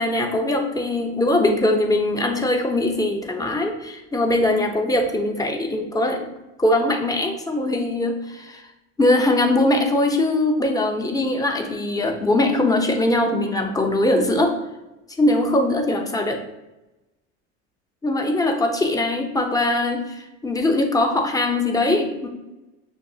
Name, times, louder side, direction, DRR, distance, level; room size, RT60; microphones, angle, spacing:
voice 1, 0.0-6.3 6.6-8.6 9.0-14.6 15.2-16.4 18.0-22.3, left 1 dB, 10° left, 3 dB, 0.6 m, -21 dB
6.6 x 2.3 x 2.7 m, 0.99 s
supercardioid pair, 105°, 38 cm